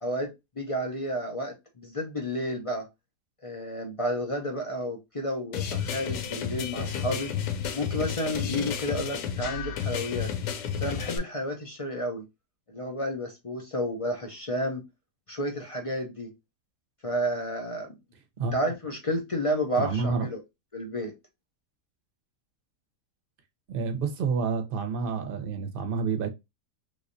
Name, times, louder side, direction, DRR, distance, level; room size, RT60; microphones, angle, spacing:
voice 1, 0.0-2.9 3.4-7.3 7.7-10.3 10.8-12.2 12.7-14.8 15.3-16.3 17.0-17.9 18.5-20.4 20.7-21.1, equal, 60° left, 0.3 m, -31 dB
sound 1, 5.5-11.2, left 7 dB, 85° left, 1.3 m, -31 dB
voice 2, 19.7-20.3 23.7-26.3, right 5 dB, 45° right, 0.8 m, -29 dB
3.3 x 3.1 x 2.6 m
omnidirectional pair, 1.7 m